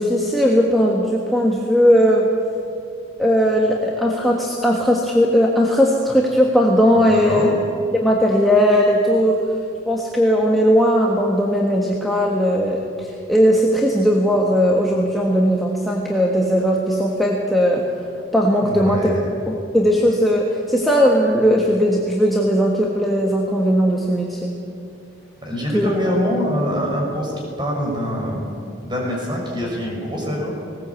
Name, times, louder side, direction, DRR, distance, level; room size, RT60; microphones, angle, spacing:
voice 1, 0.0-2.3 3.2-7.6 7.9-9.4 9.9-17.8 18.3-19.1 19.5-24.5 25.7-25.9, equal, ahead, -2 dB, 1.5 m, -18 dB
voice 2, 7.1-7.5 18.6-19.2 25.4-28.4 28.8-30.5, equal, 25° right, -2 dB, 5.8 m, -24 dB
19.5 x 18.5 x 8.4 m, 2.6 s
head